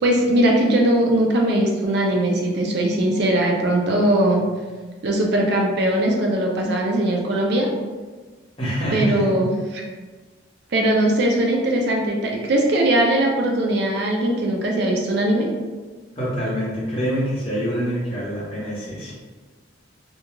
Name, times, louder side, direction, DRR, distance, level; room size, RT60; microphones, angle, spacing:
voice 1, 0.0-4.4 5.0-7.7 8.9-9.8 10.7-15.5, right 1 dB, 55° right, -1 dB, 0.4 m, -20 dB
voice 2, 8.6-9.3 16.2-19.2, equal, 30° left, -8 dB, 0.9 m, -25 dB
2.3 x 2.2 x 3.0 m, 1.3 s
head